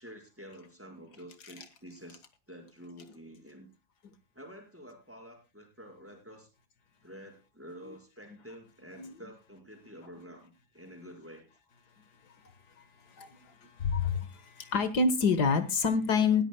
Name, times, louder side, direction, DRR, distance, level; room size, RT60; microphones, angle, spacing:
voice 1, 0.0-2.2 2.5-3.7 4.3-6.5 7.0-11.5, equal, 10° right, 1 dB, 4.7 m, -49 dB
voice 2, 13.8-16.4, left 5 dB, 80° left, 11 dB, 2.0 m, -27 dB
20.0 x 13.5 x 2.2 m, 0.29 s
omnidirectional pair, 1.7 m